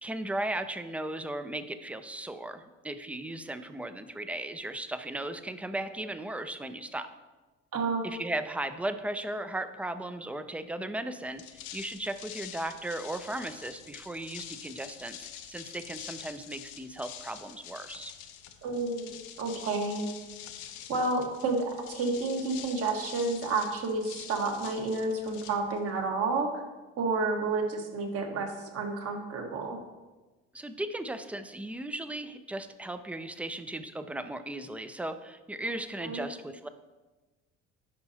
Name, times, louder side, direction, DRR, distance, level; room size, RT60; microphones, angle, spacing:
voice 1, 0.0-7.1 8.0-18.1 30.5-36.7, right 1 dB, 5° right, 10 dB, 0.4 m, -36 dB
voice 2, 7.7-8.1 18.6-20.1 20.9-26.5 27.0-29.8 36.0-36.2, right 3 dB, 55° right, 2 dB, 1.4 m, -30 dB
sound 1, 11.3-26.1, left 10 dB, 80° left, 0.7 m, -46 dB
10.5 x 5.3 x 2.8 m, 1.2 s
supercardioid pair, 95°, 29 cm